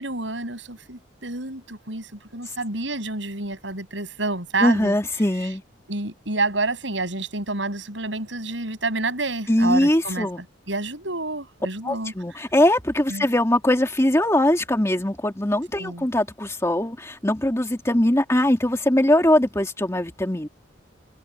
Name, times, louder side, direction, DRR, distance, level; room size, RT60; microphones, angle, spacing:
voice 1, 0.0-2.1 2.3-4.9 5.9-10.3 10.7-12.1 13.1-13.3 15.8-16.1, right 2 dB, 75° right, 7.6 m, -28 dB
voice 2, 4.6-5.6 9.5-10.4 11.8-20.5, left 1 dB, 15° left, 2.5 m, -21 dB
head